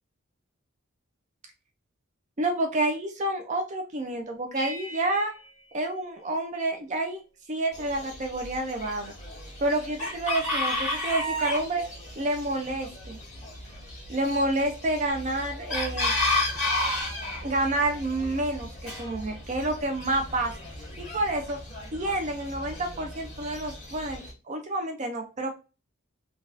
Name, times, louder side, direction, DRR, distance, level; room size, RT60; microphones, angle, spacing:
voice 1, 2.4-5.3 5.7-7.2 7.5-9.1 9.6-11.8 12.2-13.2 14.1-16.1 17.4-20.5 21.0-21.6 21.9-25.5, right 2 dB, 35° right, 5 dB, 0.5 m, -29 dB
sound 1, 4.6-6.8, right 1 dB, 15° right, 0.8 m, -43 dB
Chicken rooster, 7.7-24.3, left 1 dB, 35° left, 1.6 m, -33 dB
3.9 x 2.4 x 2.5 m, 0.32 s
head